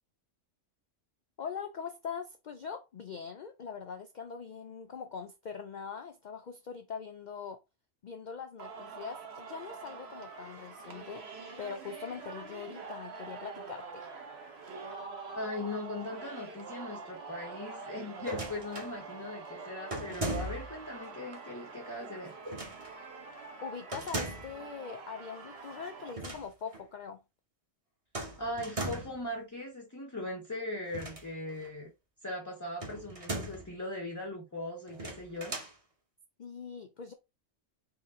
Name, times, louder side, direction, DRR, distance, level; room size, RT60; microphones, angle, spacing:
voice 1, 1.4-7.6 8.0-14.1 23.6-27.2 36.4-37.1, left 6 dB, 75° left, 0.4 m, -42 dB
Singing, 8.6-26.1, right 4 dB, 55° right, 1.1 m, -45 dB
voice 2, 15.3-22.4 28.4-31.9 32.2-35.6, left 1 dB, 20° left, 0.6 m, -39 dB
sound 1, 18.2-18.9 19.9-20.8 22.4-22.9 23.9-24.6 26.0-26.5 26.7-26.8 28.1-29.2 30.8-31.7 32.8-33.7 34.9-35.7, right 1 dB, 30° right, 1.0 m, -38 dB
4.4 x 2.7 x 3.5 m
omnidirectional pair, 1.3 m